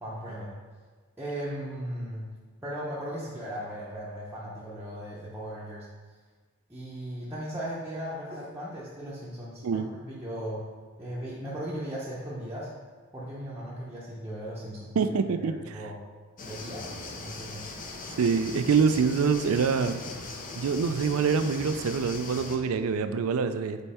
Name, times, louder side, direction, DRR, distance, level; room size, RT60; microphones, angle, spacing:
voice 1, 0.0-0.5 1.2-2.3 2.6-5.9 6.7-10.7 11.0-12.7 13.1-15.1 15.4-16.0 16.5-17.7, equal, 10° right, -9 dB, 0.8 m, -37 dB
voice 2, 15.0-15.7 18.2-20.0 20.6-23.8, right 5 dB, 80° right, 10 dB, 0.4 m, -25 dB
sound 1, 16.4-22.6, left 3 dB, 40° left, 0.6 m, -40 dB
5.3 x 4.4 x 4.3 m, 1.5 s
head